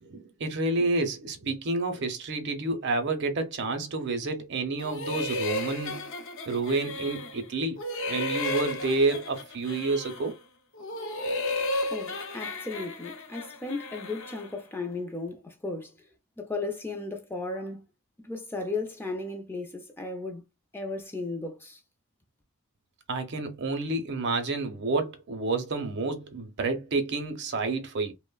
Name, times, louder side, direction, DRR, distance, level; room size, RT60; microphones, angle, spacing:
voice 1, 0.0-6.1 6.5-7.8 8.1-10.3 23.1-28.1, right 3 dB, 50° right, 0.5 m, -29 dB
sound 1, 4.8-7.4 7.8-10.3 10.7-14.5, left 2 dB, 60° left, 0.5 m, -34 dB
voice 2, 11.9-15.9 16.4-17.9 18.2-20.4 20.7-21.8, left 3 dB, 10° left, 0.3 m, -35 dB
2.9 x 2.0 x 2.2 m
head